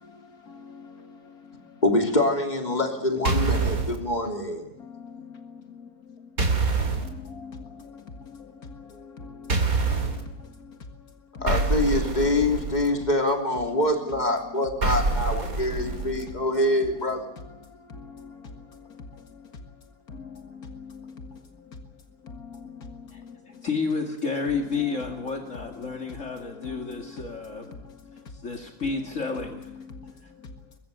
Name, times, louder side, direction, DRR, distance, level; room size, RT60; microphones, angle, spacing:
voice 1, 0.0-1.7 4.8-6.2 7.0-10.8 11.3-11.5 15.7-16.4 17.7-19.5 20.1-21.7 22.2-23.6 26.2-27.2 27.5-28.2 29.9-30.4, left 5 dB, 75° left, 2.3 m, -44 dB
voice 2, 1.8-4.7 11.4-17.3, left 1 dB, 30° left, 3.3 m, -25 dB
sound 1, 3.2-4.0 6.4-7.1 9.5-10.2 11.5-12.9 14.8-16.2, right 3 dB, 65° right, 3.2 m, -25 dB
voice 3, 23.6-27.8 28.3-29.7 30.2-30.3, left 4 dB, 50° left, 2.5 m, -31 dB
23.0 x 22.5 x 6.8 m
omnidirectional pair, 1.6 m